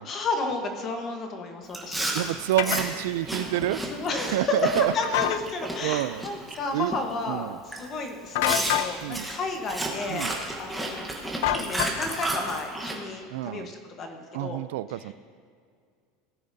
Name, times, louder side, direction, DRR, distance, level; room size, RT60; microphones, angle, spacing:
voice 1, 0.0-2.1 3.9-10.3 10.6-11.1 11.4-14.6, left 3 dB, 30° left, 4 dB, 1.1 m, -32 dB
Chewing mastication, 1.7-6.6 6.9-7.2 7.7-7.8 8.4-13.0, right 2 dB, 5° right, 1.1 m, -32 dB
voice 2, 2.1-3.8 4.2-4.9 5.2-5.3 5.8-6.2 6.7-6.9 7.3-7.6 9.0-9.3 10.1-10.3 13.3-13.7 14.3-15.1, right 14 dB, 80° right, 16 dB, 0.3 m, -28 dB
sound 1, 2.6-2.8 5.0-5.4 8.3-8.9 11.4-12.2, left 12 dB, 70° left, 0.4 m, -26 dB
18.0 x 9.5 x 2.7 m, 2.1 s
supercardioid pair, 170°, 0 cm